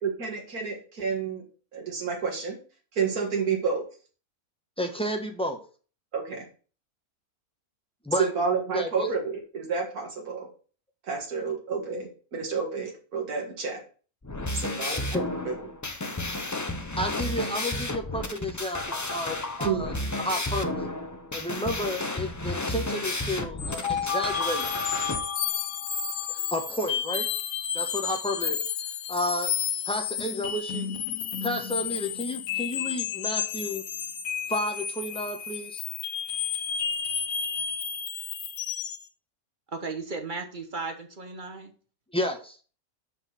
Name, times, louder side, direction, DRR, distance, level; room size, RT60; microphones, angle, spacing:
voice 1, 0.0-1.4 1.7-2.6 2.9-3.9 6.1-6.4 8.2-10.5 11.1-13.8 14.5-15.6 19.6-20.0, right 5 dB, 85° right, -1 dB, 2.3 m, -30 dB
voice 2, 4.8-5.6 8.0-8.3 8.7-9.1 15.1-15.2 17.0-20.9 21.3-24.7 26.3-27.3 27.7-28.6 29.1-29.5 29.9-31.0 31.4-33.8 34.5-35.8 42.1-42.6, left 1 dB, 5° left, 4 dB, 1.1 m, -31 dB
sound 1, 14.2-25.2, left 2 dB, 20° left, 0.4 m, -32 dB
sound 2, 23.6-39.1, left 8 dB, 70° left, 1.2 m, -31 dB
voice 3, 39.7-41.7, right 3 dB, 35° right, 6 dB, 1.1 m, -35 dB
5.8 x 5.7 x 5.7 m, 0.38 s
omnidirectional pair, 1.5 m